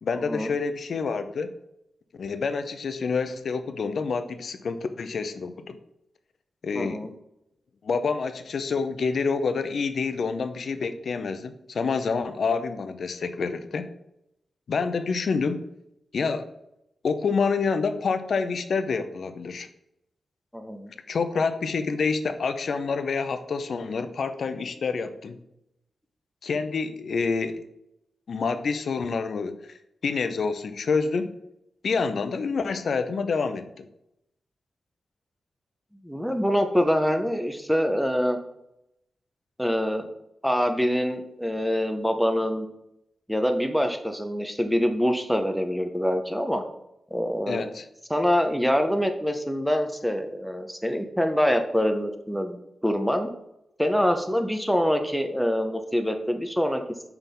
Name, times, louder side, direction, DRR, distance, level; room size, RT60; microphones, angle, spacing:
voice 1, 0.0-1.5 2.2-5.8 6.6-7.0 7.8-13.9 14.7-15.6 16.1-16.5 17.0-19.7 21.1-25.4 26.4-27.6 28.3-29.8 30.0-31.3 31.8-33.9 47.5-47.9, left 5 dB, 60° left, 10 dB, 0.6 m, -27 dB
voice 2, 6.7-7.1 20.5-20.9 36.0-38.4 39.6-40.1 40.4-42.7 43.3-46.6 47.1-47.6 48.1-53.3 53.8-56.8, equal, ahead, 6 dB, 0.7 m, -25 dB
5.9 x 3.5 x 5.3 m, 0.82 s
wide cardioid pair, 135°, 0 cm